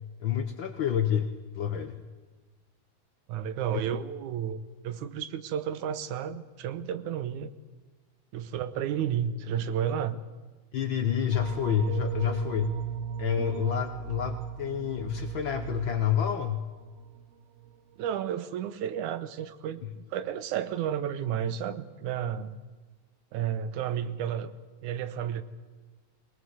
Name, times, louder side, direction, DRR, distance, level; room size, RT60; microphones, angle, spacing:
voice 1, 0.2-2.0 3.7-3.8 10.7-12.7 13.2-16.6, left 8 dB, 80° left, 7 dB, 1.1 m, -28 dB
voice 2, 3.3-7.5 8.3-10.2 18.0-22.6 23.3-24.5 24.8-25.4, right 9 dB, 80° right, 13 dB, 2.3 m, -32 dB
sound 1, 11.3-17.3 17.6-17.7, right 8 dB, 65° right, 1.7 m, -37 dB
21.5 x 18.5 x 7.9 m, 1.3 s
omnidirectional pair, 3.4 m